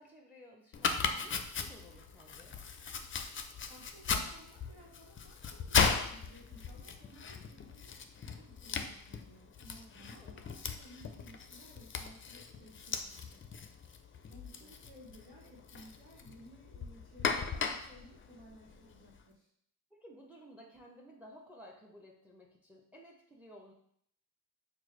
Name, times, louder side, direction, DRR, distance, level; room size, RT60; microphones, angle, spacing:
voice 1, 0.0-2.6 9.9-10.4 14.6-14.7 19.9-23.7, equal, 5° right, 0 dB, 0.6 m, -56 dB
Domestic sounds home sounds, 0.7-19.2, left 6 dB, 35° left, 0.4 m, -37 dB
voice 2, 3.7-13.5 14.2-19.5, equal, 85° right, -6 dB, 1.0 m, -57 dB
4.6 x 2.1 x 3.1 m, 0.69 s
supercardioid pair, 50°, 39 cm